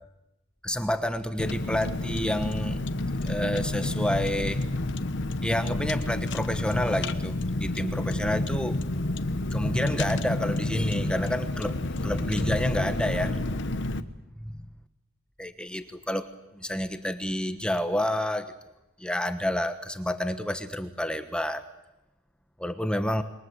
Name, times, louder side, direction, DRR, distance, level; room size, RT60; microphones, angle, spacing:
voice 1, 0.6-2.8 3.2-4.6 5.4-8.8 9.5-13.4 14.4-14.6 15.4-16.3 16.5-18.5 19.0-21.6 22.6-23.2, left 1 dB, 5° left, 9 dB, 1.2 m, -29 dB
Car, 1.4-14.0, left 2 dB, 65° left, 1.2 m, -30 dB
27.5 x 23.0 x 8.0 m, 0.94 s
head